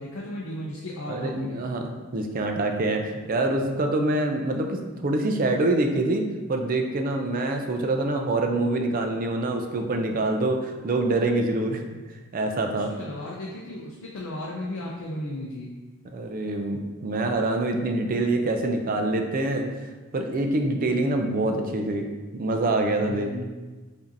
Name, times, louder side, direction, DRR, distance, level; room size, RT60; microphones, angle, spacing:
voice 1, 0.0-1.7 12.7-15.7 23.1-23.5, left 1 dB, 65° left, -3 dB, 0.5 m, -35 dB
voice 2, 1.1-11.8 12.3-12.9 16.1-22.1 22.3-23.5, right 2 dB, 40° right, 4 dB, 0.4 m, -25 dB
5.0 x 2.7 x 2.6 m, 1.3 s
head